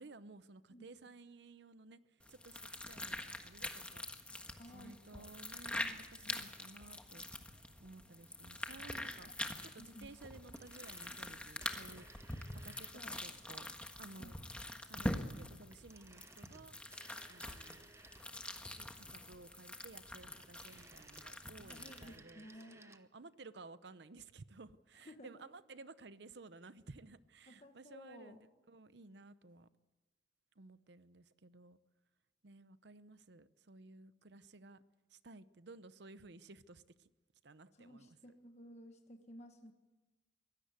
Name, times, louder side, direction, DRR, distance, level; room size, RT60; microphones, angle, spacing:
voice 1, 0.0-2.0 2.3-2.6 2.8-4.0 4.7-7.2 7.8-9.3 9.6-13.7 14.0-14.4 14.8-16.7 17.3-17.9 18.7-29.7 30.6-31.8 32.4-34.8 35.1-37.1 37.4-38.2, right 3 dB, 65° right, 0.8 m, -56 dB
sound 1, 2.2-22.2, left 1 dB, 5° left, 1.4 m, -45 dB
voice 2, 4.6-5.3 5.7-5.9 6.2-6.4 9.3-9.4 9.8-10.1 12.9-13.3 14.2-14.3 21.6-22.8 25.0-25.3 27.5-28.4 37.7-39.7, equal, 35° left, 1.4 m, -55 dB
sound 2, 10.4-13.3 15.7-18.6 20.2-23.1 23.3-23.4, right 3 dB, 15° right, 0.9 m, -61 dB
23.5 x 17.0 x 8.2 m
head